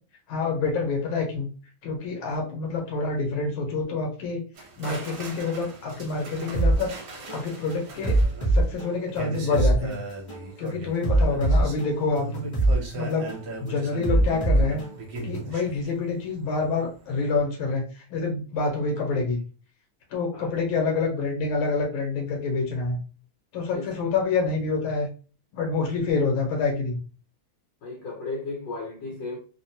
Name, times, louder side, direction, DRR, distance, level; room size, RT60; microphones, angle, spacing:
voice 1, 0.3-1.5 1.8-4.4 4.8-6.9 7.3-8.2 8.5-10.0 10.6-12.4 12.9-13.3 13.6-14.8 15.2-19.4 20.1-23.0 23.5-25.1 25.5-27.0, left 4 dB, 90° left, 1.6 m, -27 dB
sound 1, 4.6-16.7 16.9-17.3, right 3 dB, 65° right, 1.4 m, -39 dB
sound 2, 6.5-6.7 7.3-7.5 8.0-9.8 10.3-10.5 11.0-12.8 13.3-13.5 14.0-15.5, right 2 dB, 35° left, 0.7 m, -23 dB
voice 2, 27.8-29.4, left 3 dB, 70° left, 1.5 m, -35 dB
3.5 x 2.0 x 2.7 m
omnidirectional pair, 2.2 m